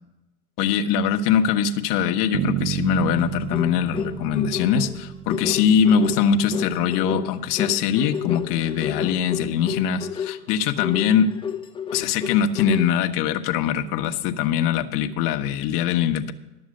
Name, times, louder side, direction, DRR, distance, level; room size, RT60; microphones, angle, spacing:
voice 1, 0.6-11.3 11.9-16.3, left 8 dB, 45° left, 7 dB, 1.0 m, -22 dB
Bass guitar, 2.3-6.3, right 11 dB, 45° right, 1.0 m, -31 dB
sound 1, 3.2-13.0, left 7 dB, 10° left, 0.6 m, -31 dB
12.0 x 7.2 x 6.3 m, 1.0 s
hypercardioid pair, 110°, 45 cm